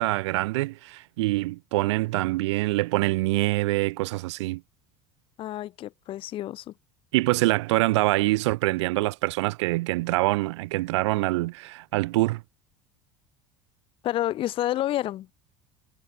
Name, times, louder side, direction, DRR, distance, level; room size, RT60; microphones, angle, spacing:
voice 1, 0.0-4.6 7.1-12.4, right 20 dB, 70° right, 0.7 m, -25 dB
voice 2, 5.4-6.7 14.0-15.3, left 13 dB, 35° left, 0.4 m, -29 dB
figure-of-eight pair, 70°, 16 cm